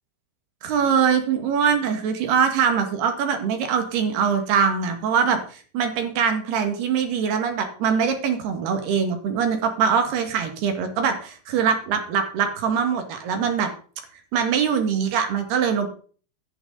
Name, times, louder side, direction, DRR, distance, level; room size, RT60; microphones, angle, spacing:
voice 1, 0.6-13.7 14.3-15.9, right 7 dB, 60° right, 6 dB, 3.6 m, -23 dB
15.0 x 11.0 x 3.9 m, 0.42 s
omnidirectional pair, 5.7 m